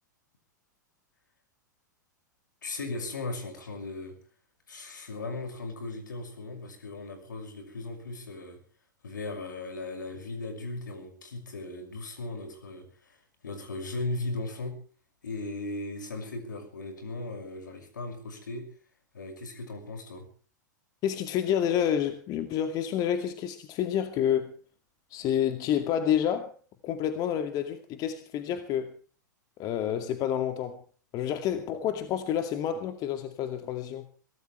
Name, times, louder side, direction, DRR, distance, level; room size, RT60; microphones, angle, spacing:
voice 1, 2.6-4.2 4.7-8.6 9.0-14.8 15.2-18.7 19.1-20.3, left 2 dB, 80° left, 6 dB, 6.2 m, -37 dB
voice 2, 21.0-24.5 25.1-26.5 26.8-28.9 29.6-30.8 31.1-34.1, left 9 dB, 40° left, 7 dB, 2.3 m, -29 dB
23.5 x 17.5 x 3.4 m, 0.40 s
figure-of-eight pair, 100°, 10 cm